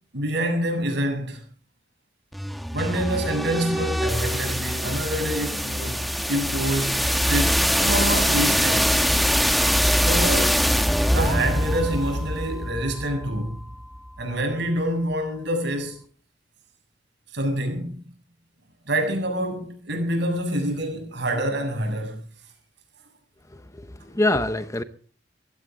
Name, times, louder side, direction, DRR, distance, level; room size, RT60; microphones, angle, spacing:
voice 1, 0.1-1.4 2.7-6.0 6.3-7.0 7.3-9.0 10.0-10.6 11.1-13.6 14.2-16.0 17.3-18.0 18.9-22.2, right 1 dB, 65° right, 7.7 m, -26 dB
sound 1, 2.3-14.2, equal, ahead, 1.2 m, -23 dB
voice 2, 23.5-24.8, left 2 dB, 15° left, 0.8 m, -25 dB
22.0 x 15.5 x 3.8 m
head